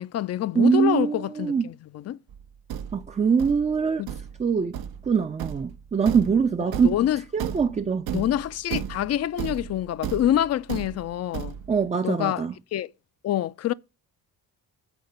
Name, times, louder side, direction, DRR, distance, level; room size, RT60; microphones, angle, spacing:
voice 1, 0.0-2.2 4.0-4.1 6.8-7.2 8.1-11.5 12.0-12.4 12.7-12.9 13.2-13.7, left 11 dB, 45° left, 0.4 m, -26 dB
voice 2, 0.6-1.7 2.9-4.0 4.4-4.7 5.1-6.9 7.3-8.2 11.7-12.5, right 6 dB, 20° right, 0.4 m, -23 dB
Thump thud, 2.3-11.9, right 9 dB, 75° right, 0.8 m, -35 dB
8.1 x 4.7 x 6.5 m
cardioid pair, 105°, 37 cm